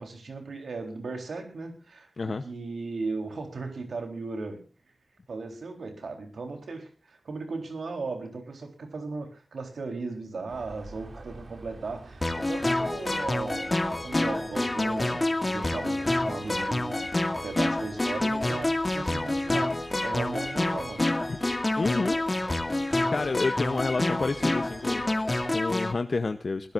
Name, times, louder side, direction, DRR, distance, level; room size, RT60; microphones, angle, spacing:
voice 1, 0.0-4.7 5.3-21.2, right 3 dB, 85° right, 5 dB, 3.9 m, -37 dB
sound 1, 10.5-25.6, right 3 dB, 60° right, 2.9 m, -48 dB
sound 2, 12.2-25.9, left 2 dB, 30° left, 2.2 m, -28 dB
voice 2, 21.8-22.2 23.1-26.7, left 3 dB, 55° left, 9 dB, 0.9 m, -29 dB
22.0 x 15.0 x 2.6 m, 0.34 s
wide cardioid pair, 65°, 0 cm